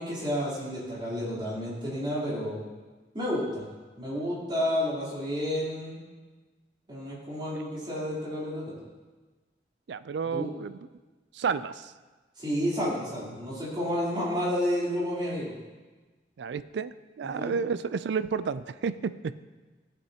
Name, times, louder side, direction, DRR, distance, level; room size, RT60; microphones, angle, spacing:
voice 1, 0.0-2.6 3.1-3.6 4.0-6.0 6.9-8.8 10.3-10.5 12.4-15.5 17.2-17.6, equal, 25° right, -8 dB, 3.4 m, -30 dB
voice 2, 9.9-10.7 11.3-11.9 16.4-19.4, right 6 dB, 70° right, 14 dB, 0.4 m, -31 dB
14.5 x 8.1 x 2.8 m, 1.3 s
head